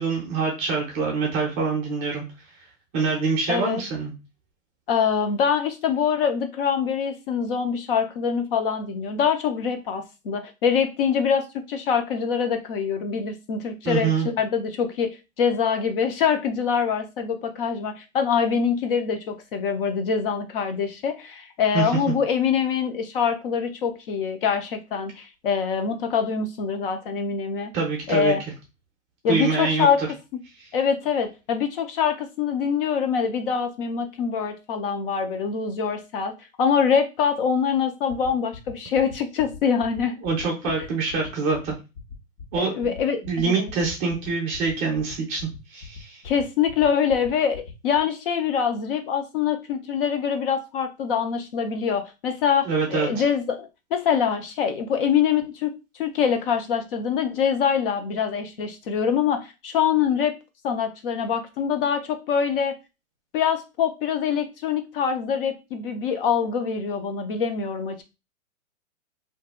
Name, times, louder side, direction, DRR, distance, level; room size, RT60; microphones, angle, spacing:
voice 1, 0.0-2.2 2.9-4.1 13.8-14.3 21.7-22.1 27.7-28.3 29.3-30.1 30.6-30.7 40.2-41.7 42.5-42.9 43.3-46.2 52.6-53.2, right 4 dB, 20° right, -1 dB, 0.6 m, -25 dB
voice 2, 3.5-3.8 4.9-15.1 15.4-27.7 28.1-28.4 29.2-30.0 30.7-36.3 36.6-40.1 42.6-43.7 46.2-60.3 60.6-62.8 63.3-68.0, left 7 dB, 40° left, 7 dB, 0.6 m, -24 dB
sound 1, 38.1-48.0, left 5 dB, 65° left, 1.2 m, -40 dB
2.6 x 2.2 x 3.6 m, 0.29 s
hypercardioid pair, 145°, 42 cm